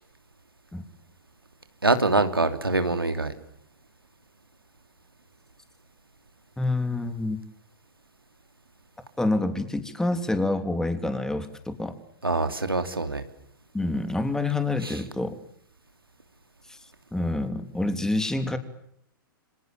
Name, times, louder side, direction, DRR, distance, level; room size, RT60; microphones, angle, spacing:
voice 1, 1.8-3.3 12.2-13.2 14.8-15.0, right 2 dB, 90° right, 8 dB, 3.0 m, -24 dB
voice 2, 6.6-7.4 9.2-11.9 13.7-15.4 16.7-16.8 17.1-18.6, left 2 dB, 5° left, 9 dB, 3.2 m, -27 dB
28.0 x 26.0 x 7.6 m, 0.73 s
figure-of-eight pair, 105°, 12 cm